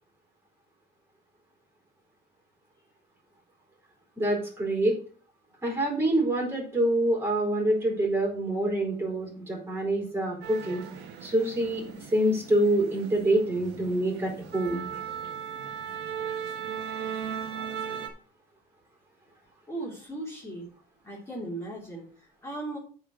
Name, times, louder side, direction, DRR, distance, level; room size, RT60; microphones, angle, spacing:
voice 1, 4.2-4.9 5.6-10.8 11.2-14.9, right 1 dB, 15° right, 0 dB, 4.4 m, -26 dB
sound 1, 10.4-18.1, right 8 dB, 85° right, 1.4 m, -37 dB
voice 2, 19.7-20.7 21.0-22.8, right 2 dB, 15° left, -5 dB, 3.3 m, -37 dB
8.8 x 4.5 x 6.3 m, 0.42 s
cardioid pair, 110°, 17 cm